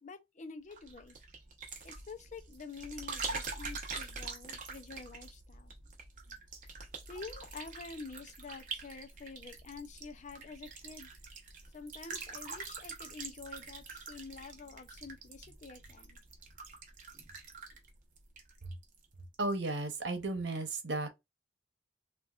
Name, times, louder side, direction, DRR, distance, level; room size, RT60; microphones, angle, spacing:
voice 1, 0.0-1.2 1.8-5.7 7.1-11.1 11.7-16.2, left 4 dB, 45° left, 0.5 m, -48 dB
sound 1, 0.7-19.0 19.3-19.8, right 4 dB, 50° right, 0.8 m, -45 dB
voice 2, 19.4-21.1, right 2 dB, 90° right, 0.9 m, -34 dB
3.5 x 2.4 x 2.4 m
head